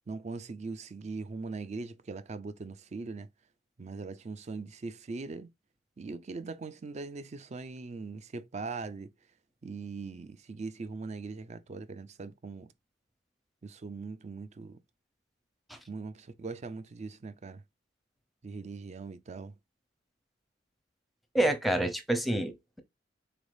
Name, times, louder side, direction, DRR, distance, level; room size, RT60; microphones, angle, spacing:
voice 1, 0.1-3.3 3.8-5.5 6.0-9.1 9.6-12.7 13.6-14.8 15.9-17.6 18.4-19.5, right 4 dB, 40° right, 0.4 m, -40 dB
voice 2, 21.3-22.8, right 1 dB, ahead, 0.7 m, -28 dB
3.9 x 3.4 x 2.5 m
head